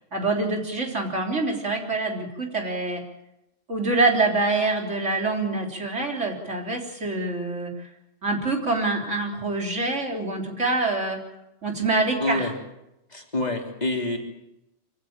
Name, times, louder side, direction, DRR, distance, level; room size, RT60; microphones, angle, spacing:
voice 1, 0.1-3.0 3.7-7.9 8.2-11.2 11.6-12.5, right 3 dB, 90° right, 1 dB, 3.9 m, -25 dB
voice 2, 12.2-12.5 13.1-14.2, left 2 dB, 35° left, 1 dB, 3.6 m, -27 dB
25.0 x 16.0 x 8.9 m, 0.90 s
omnidirectional pair, 1.2 m